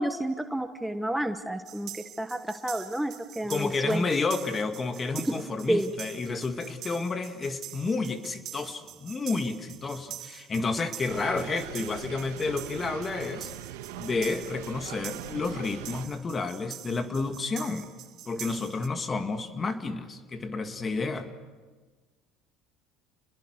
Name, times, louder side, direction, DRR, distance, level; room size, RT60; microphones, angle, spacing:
voice 1, 0.0-4.0 5.2-5.9, right 1 dB, 5° right, 8 dB, 1.1 m, -30 dB
sound 1, 1.7-18.9, right 12 dB, 60° right, 1.8 m, -45 dB
voice 2, 3.4-13.5 14.0-17.9 18.3-21.3, left 3 dB, 30° left, 7 dB, 2.2 m, -30 dB
sound 2, 11.1-16.1, right 11 dB, 90° right, 1.6 m, -41 dB
29.5 x 21.5 x 6.5 m, 1.4 s
supercardioid pair, 90°, 0 cm